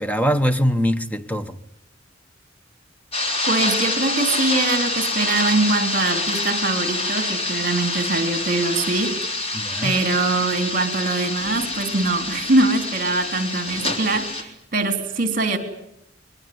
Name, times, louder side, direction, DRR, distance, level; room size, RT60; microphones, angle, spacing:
voice 1, 0.0-1.6 9.5-10.0, equal, 10° left, 1.1 m, -22 dB
sound 1, 3.1-14.4, left 2 dB, 30° left, 3.4 m, -26 dB
voice 2, 3.5-9.5 9.8-15.6, right 2 dB, 45° right, 3.5 m, -23 dB
22.5 x 22.0 x 9.5 m
head